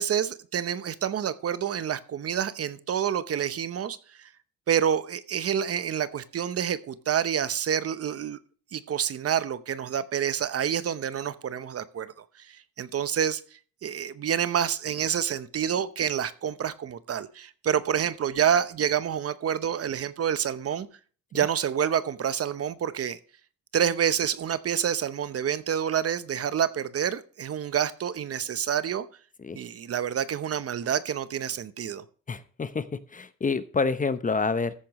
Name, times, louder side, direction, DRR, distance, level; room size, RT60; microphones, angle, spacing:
voice 1, 0.0-4.0 4.7-8.4 8.7-12.1 12.5-13.4 13.8-20.9 21.3-23.2 23.7-29.0 29.5-32.0, right 8 dB, 50° right, 14 dB, 0.9 m, -28 dB
voice 2, 32.3-32.9 33.1-34.7, left 4 dB, 25° left, 13 dB, 0.9 m, -27 dB
14.0 x 8.5 x 3.1 m, 0.41 s
cardioid pair, 90°, 30 cm